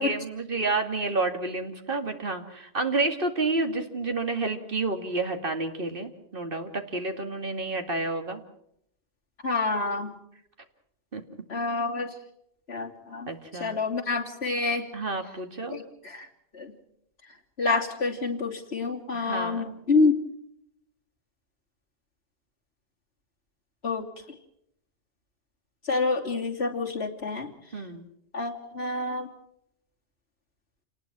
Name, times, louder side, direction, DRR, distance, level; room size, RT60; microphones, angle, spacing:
voice 1, 0.0-8.4 11.1-11.2 13.3-13.8 14.9-15.8 19.1-19.7 27.7-28.1, right 3 dB, 50° right, 6 dB, 2.5 m, -30 dB
voice 2, 9.4-10.1 11.5-12.1 12.7-13.3 13.6-14.9 15.7-16.3 16.5-16.7 17.6-20.1 23.8-24.0 25.9-27.5 28.3-29.3, left 3 dB, 65° left, 0 dB, 3.2 m, -27 dB
28.5 x 19.5 x 6.1 m, 0.74 s
omnidirectional pair, 1.2 m